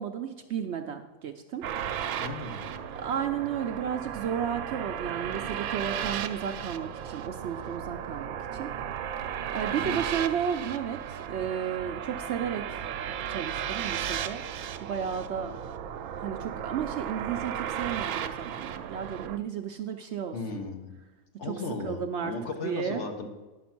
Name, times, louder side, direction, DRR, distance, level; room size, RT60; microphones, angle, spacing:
voice 1, 0.0-1.6 2.9-8.7 9.3-12.8 13.3-14.4 14.8-15.6 16.2-20.6 21.5-22.3 22.6-23.0, right 8 dB, 65° right, 6 dB, 0.7 m, -33 dB
sound 1, 1.6-19.4, right 9 dB, 90° right, 1.1 m, -35 dB
voice 2, 2.2-2.9 9.7-10.0 20.3-21.0 21.4-23.3, left 3 dB, 55° left, 4 dB, 1.3 m, -36 dB
10.0 x 6.1 x 5.8 m, 1.1 s
omnidirectional pair, 1.5 m